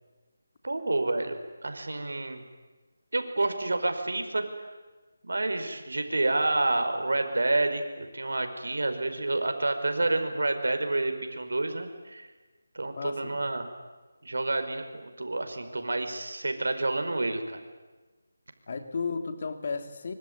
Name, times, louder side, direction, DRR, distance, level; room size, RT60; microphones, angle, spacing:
voice 1, 0.6-2.4 3.1-4.4 5.2-12.3 12.8-13.7 14.2-17.6, right 2 dB, 80° right, 7 dB, 5.3 m, -29 dB
voice 2, 13.0-13.5 18.7-20.1, left 4 dB, 40° left, 7 dB, 2.8 m, -34 dB
25.0 x 25.0 x 9.7 m, 1.3 s
figure-of-eight pair, 170°, 0 cm